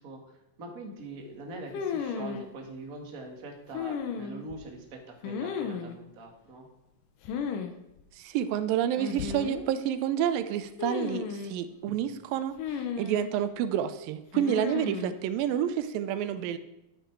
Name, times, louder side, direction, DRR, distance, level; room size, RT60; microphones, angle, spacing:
voice 1, 0.0-6.7 11.8-12.0 14.6-14.8, right 2 dB, 35° right, 1 dB, 1.5 m, -43 dB
sound 1, 1.7-2.4 3.7-4.6 5.2-6.0 7.2-7.7 8.0-8.1 9.0-9.7 10.8-11.6 12.6-13.4 14.3-15.1, left 6 dB, 75° left, 2.4 m, -34 dB
voice 2, 8.2-12.5 13.0-16.6, right 10 dB, 85° right, 11 dB, 2.5 m, -29 dB
12.0 x 9.1 x 4.6 m, 0.88 s
omnidirectional pair, 4.0 m